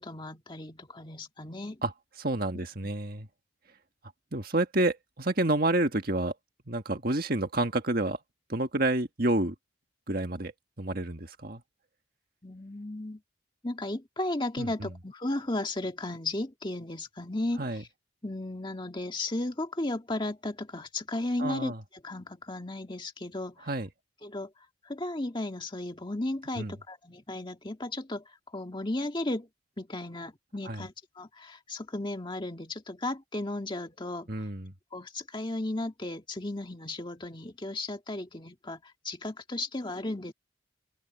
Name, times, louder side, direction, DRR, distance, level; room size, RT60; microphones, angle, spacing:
voice 1, 0.0-1.8 2.5-2.7 12.4-13.2 13.6-17.9 18.2-21.7 22.0-23.7 24.2-24.5 24.8-29.5 29.8-34.4 34.9-40.3, left 2 dB, 25° left, 1.9 m, -35 dB
voice 2, 2.2-3.3 4.3-6.3 6.7-8.2 8.5-9.5 10.1-10.5 10.8-11.6 14.6-14.9 17.6-17.8 21.4-21.8 23.7-23.9 26.6-26.7 30.6-30.8 34.3-34.7, right 2 dB, 45° right, 1.6 m, -29 dB
open air
head